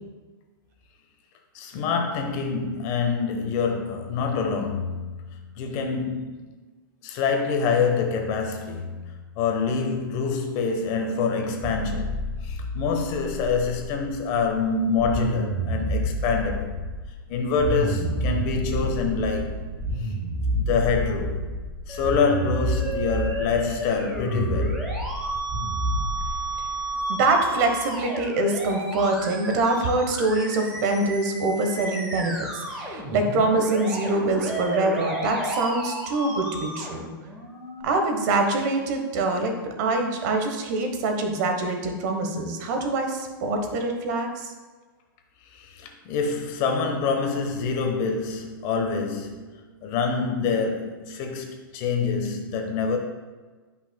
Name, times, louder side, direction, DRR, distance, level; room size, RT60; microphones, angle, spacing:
voice 1, 1.5-5.3 5.5-6.6 7.0-9.0 9.4-16.7 17.3-19.7 20.0-20.1 20.5-21.4 21.9-24.8 45.5-49.5 49.8-53.0, left 5 dB, 40° left, 1.1 m, -26 dB
sound 1, 11.6-14.6 14.9-27.0, equal, 30° right, 1.3 m, -29 dB
Musical instrument, 21.9-37.8, right 1 dB, 5° right, 1.5 m, -33 dB
voice 2, 27.1-37.1 37.8-44.5, right 2 dB, 50° right, 1.2 m, -24 dB
10.0 x 5.6 x 2.3 m
hypercardioid pair, 140°, 12 cm